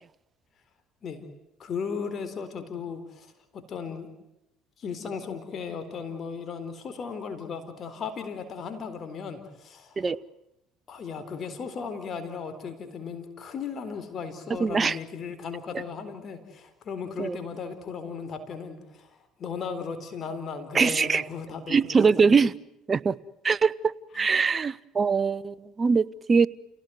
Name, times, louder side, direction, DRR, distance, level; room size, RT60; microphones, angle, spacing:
voice 1, 1.6-4.1 4.8-10.1 10.9-19.1 19.4-21.8 22.1-22.2 24.1-24.3, left 5 dB, 50° left, 9 dB, 4.0 m, -36 dB
voice 2, 14.6-15.0 17.2-17.4 20.7-21.2 21.7-22.5 22.9-23.1 23.4-26.5, right 5 dB, 30° right, 16 dB, 0.9 m, -22 dB
29.0 x 18.0 x 9.3 m, 0.91 s
supercardioid pair, 75°, 0 cm